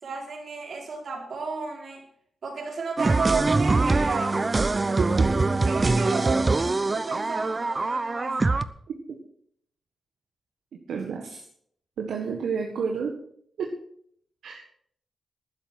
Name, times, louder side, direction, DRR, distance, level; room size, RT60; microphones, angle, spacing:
voice 1, 0.0-2.0 2.4-4.4 5.7-8.6, right 4 dB, 65° right, 1 dB, 4.1 m, -32 dB
sound 1, 3.0-8.6, right 3 dB, 35° right, 0.8 m, -23 dB
voice 2, 10.9-11.4 12.0-13.1 13.6-13.7 14.4-14.6, right 6 dB, 90° right, 0 dB, 1.7 m, -30 dB
12.5 x 10.0 x 6.1 m, 0.65 s
cardioid pair, 60°, 0 cm